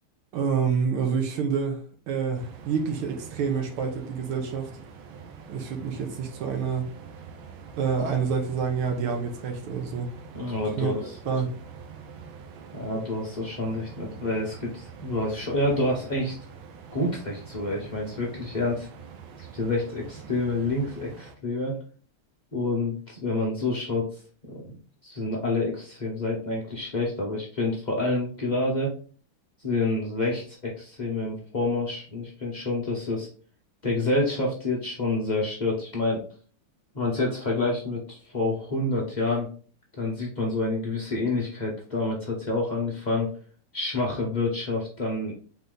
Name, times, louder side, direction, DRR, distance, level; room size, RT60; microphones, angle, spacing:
voice 1, 0.3-4.7 5.5-6.9 7.8-10.1 10.8-11.6, right 6 dB, 90° right, 1.7 m, -28 dB
sound 1, 2.4-21.4, right 6 dB, 75° right, 1.4 m, -45 dB
voice 2, 10.3-11.2 12.7-16.4 16.9-18.9 19.4-21.8 22.5-24.1 24.4-24.7 25.0-28.9 29.6-33.3 33.8-36.2 36.9-39.5 40.0-43.3 43.7-45.3, left 2 dB, 85° left, 0.4 m, -28 dB
4.0 x 3.4 x 3.7 m
omnidirectional pair, 2.3 m